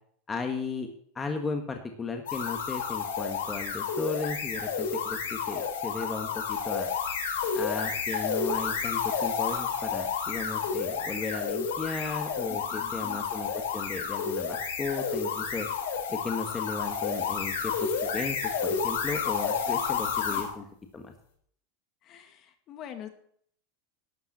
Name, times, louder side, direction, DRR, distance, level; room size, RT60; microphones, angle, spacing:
voice 1, 0.3-0.9 1.1-6.9 7.5-15.7 16.1-20.6 20.9-21.1, left 4 dB, 15° left, 4 dB, 1.4 m, -35 dB
sound 1, 2.3-20.5, left 6 dB, 85° left, 3.9 m, -31 dB
voice 2, 12.7-13.3 19.7-20.4 22.0-23.1, left 10 dB, 40° left, 7 dB, 1.9 m, -45 dB
12.0 x 5.6 x 8.4 m, 0.63 s
supercardioid pair, 135°, 0 cm